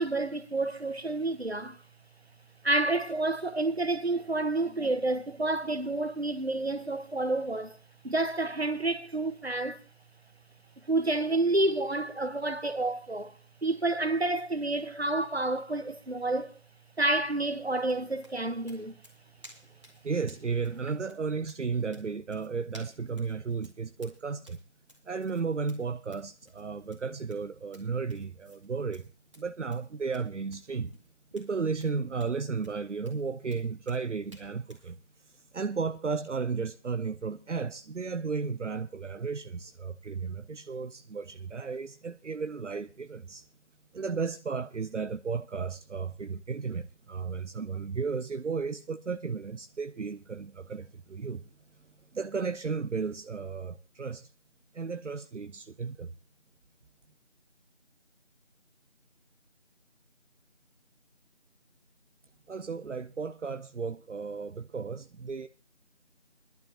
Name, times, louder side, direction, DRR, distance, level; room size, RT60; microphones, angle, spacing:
voice 1, 0.0-1.8 2.6-7.8 8.0-9.8 10.8-13.3 13.6-16.6 17.0-19.0, right 2 dB, 60° right, 1.3 m, -29 dB
sound 1, 17.8-34.9, equal, 25° right, 2.2 m, -58 dB
voice 2, 20.0-24.6 25.1-29.1 29.4-30.9 31.3-43.4 43.9-51.4 52.1-54.3 54.7-56.1 62.5-65.5, right 5 dB, 80° right, 0.6 m, -34 dB
22.5 x 11.5 x 2.8 m
figure-of-eight pair, 175°, 36 cm